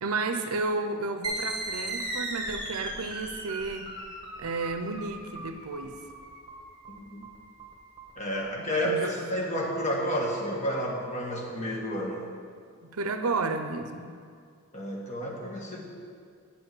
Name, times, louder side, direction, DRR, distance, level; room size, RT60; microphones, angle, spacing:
voice 1, 0.0-3.9 4.4-6.0 8.6-9.0 12.8-14.1, right 3 dB, 75° right, 8 dB, 0.6 m, -32 dB
sound 1, 1.2-8.5, right 1 dB, 20° right, 1.3 m, -37 dB
voice 2, 6.9-7.3 8.2-12.2 14.7-15.8, equal, 30° left, -1 dB, 1.3 m, -30 dB
8.3 x 5.3 x 7.6 m, 2.2 s
head